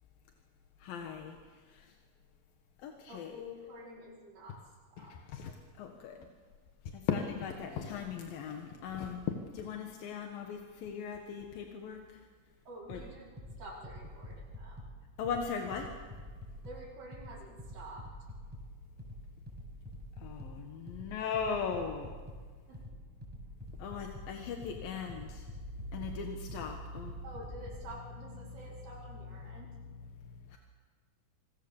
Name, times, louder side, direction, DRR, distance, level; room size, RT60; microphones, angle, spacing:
voice 1, 0.8-2.0 2.8-3.4 4.5-4.6 5.0-6.3 6.8-12.2 12.9-13.0 15.2-15.9 20.2-22.2 23.7-25.5 25.9-27.2 28.4-28.6 29.4-29.6 29.9-30.6, left 6 dB, 85° left, 3 dB, 3.3 m, -39 dB
voice 2, 3.1-4.6 4.9-5.1 12.7-13.3 13.6-14.8 16.6-18.1 22.7-22.8 27.2-29.7, equal, 75° right, -6 dB, 6.7 m, -48 dB
sound 1, 12.9-27.9, equal, 5° right, 6.2 m, -48 dB
27.5 x 21.5 x 7.2 m, 1.5 s
omnidirectional pair, 4.0 m